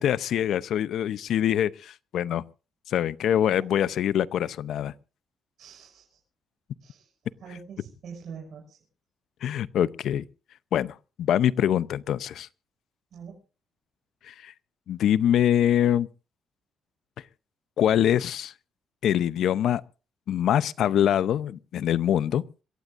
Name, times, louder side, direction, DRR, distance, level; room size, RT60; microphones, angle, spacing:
voice 1, 0.0-2.4 2.9-4.9 9.4-10.2 10.7-12.5 14.2-14.5 14.9-16.1 17.8-18.5 19.0-19.8 20.3-22.4, left 10 dB, 75° left, 0.7 m, -24 dB
voice 2, 5.6-6.2 6.8-7.1 7.4-8.8 13.1-13.4, right 6 dB, 65° right, 6.0 m, -44 dB
26.5 x 14.5 x 2.6 m
cardioid pair, 90°, 0 cm